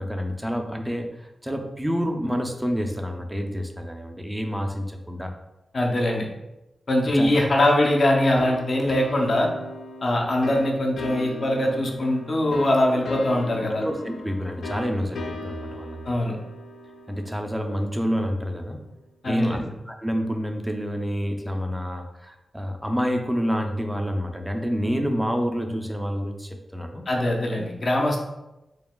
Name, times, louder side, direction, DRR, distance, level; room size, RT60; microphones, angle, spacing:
voice 1, 0.0-5.4 7.1-7.3 13.8-16.0 17.1-18.8 19.2-27.0, equal, 5° right, 4 dB, 0.3 m, -28 dB
voice 2, 5.7-6.3 6.9-9.5 10.0-13.9 16.0-16.4 19.2-19.6 27.1-28.2, left 1 dB, 40° left, 0 dB, 0.6 m, -22 dB
sound 1, 8.4-18.8, left 2 dB, 85° left, 0.4 m, -37 dB
4.5 x 3.0 x 2.2 m, 0.98 s
wide cardioid pair, 170°, 0 cm